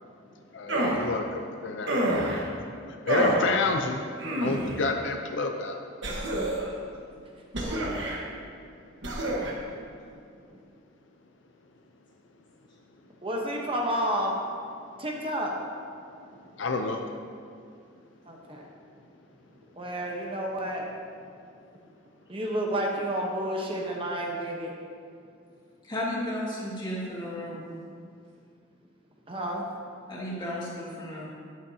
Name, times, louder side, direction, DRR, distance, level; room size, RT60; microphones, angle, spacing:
voice 1, 0.5-2.5 3.1-4.0 4.4-5.8 16.6-17.0, left 3 dB, 65° left, 4 dB, 0.6 m, -29 dB
sound 1, 0.7-1.1 1.9-2.4 3.1-3.5 4.2-4.8 6.0-6.7 7.5-8.2 9.0-9.5, right 1 dB, 65° right, 1.4 m, -27 dB
voice 2, 7.6-8.3 13.2-14.3 15.0-15.5 18.2-18.6 19.8-20.9 22.3-24.7 29.3-29.6, right 1 dB, 25° right, -1 dB, 1.0 m, -31 dB
voice 3, 25.8-27.6 30.1-31.3, left 1 dB, 25° left, -6 dB, 2.1 m, -33 dB
12.0 x 9.7 x 2.8 m, 2.3 s
head